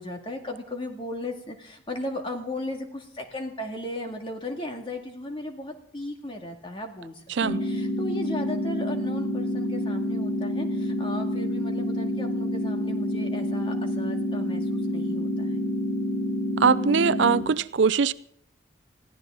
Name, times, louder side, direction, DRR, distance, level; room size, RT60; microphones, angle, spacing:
voice 1, 0.0-15.6, left 1 dB, 30° left, 2.1 m, -36 dB
voice 2, 7.3-7.6 16.6-18.1, right 5 dB, 80° right, 0.5 m, -21 dB
sound 1, 7.4-17.4, equal, 50° left, 3.5 m, -28 dB
21.0 x 15.5 x 3.8 m
head